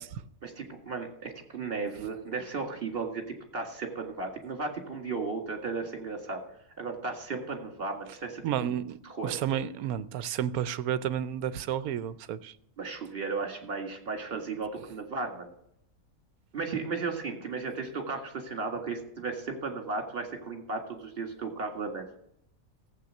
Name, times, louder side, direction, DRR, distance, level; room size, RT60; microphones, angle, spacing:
voice 1, 0.4-6.4 6.8-8.7 9.1-9.3 12.8-15.5 16.5-22.1, right 4 dB, 40° right, 2.2 m, -35 dB
voice 2, 8.4-12.5, right 10 dB, 85° right, 1.1 m, -31 dB
15.0 x 8.0 x 6.4 m
omnidirectional pair, 1.5 m